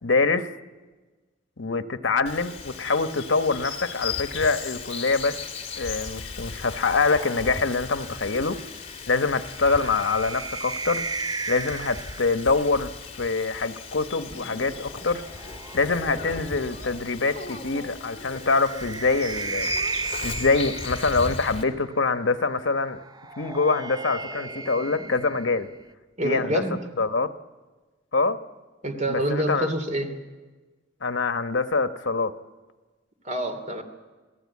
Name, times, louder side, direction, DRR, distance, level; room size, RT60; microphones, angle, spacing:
voice 1, 0.0-0.5 1.6-5.4 5.8-8.6 9.1-11.1 11.5-12.9 13.2-15.2 15.7-19.7 20.2-23.0 23.4-25.7 26.2-26.6 27.0-27.3 28.1-28.4 29.1-29.7 31.0-32.3, left 3 dB, 70° left, 9 dB, 1.1 m, -25 dB
Bird vocalization bird call bird song, 2.3-21.6, left 5 dB, 35° left, 2.5 m, -37 dB
sound 1, 7.0-12.5 13.9-16.9 18.3-21.7 23.0-25.9, right 4 dB, 20° right, 0.7 m, -36 dB
voice 2, 26.2-26.8 28.8-30.1 33.2-33.8, right 1 dB, 40° right, 7 dB, 2.9 m, -26 dB
28.0 x 18.0 x 8.5 m, 1.3 s
head